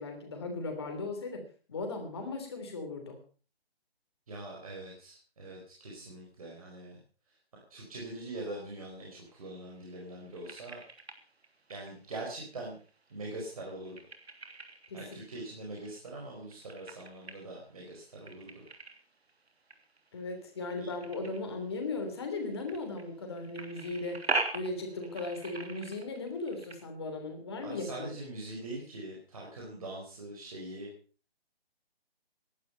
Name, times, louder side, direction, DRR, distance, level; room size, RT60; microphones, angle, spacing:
voice 1, 0.0-3.2 14.9-15.0 20.1-24.3 24.5-28.1, left 3 dB, 25° left, 4 dB, 3.2 m, -37 dB
voice 2, 4.3-7.0 7.7-10.8 11.7-12.8 13.1-14.0 14.9-18.6 20.8-20.9 27.6-30.9, right 2 dB, 35° right, -2 dB, 4.5 m, -43 dB
sound 1, 9.3-26.8, right 3 dB, 85° right, 3.1 m, -43 dB
17.0 x 11.5 x 5.5 m, 0.38 s
hypercardioid pair, 175°, 31 cm